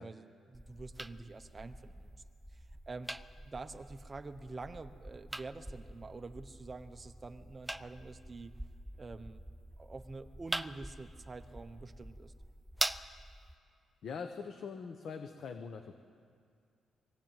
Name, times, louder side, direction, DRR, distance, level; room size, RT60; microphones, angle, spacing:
voice 1, 0.0-2.1 2.5-3.1 3.4-8.5 9.0-9.4 9.8-12.3, right 3 dB, 20° right, 9 dB, 0.9 m, -47 dB
sound 1, 0.5-13.5, right 1 dB, 5° right, 0.5 m, -44 dB
voice 2, 14.0-15.9, left 5 dB, 55° left, 7 dB, 1.0 m, -42 dB
22.0 x 16.5 x 9.0 m, 2.3 s
cardioid pair, 155°, 0 cm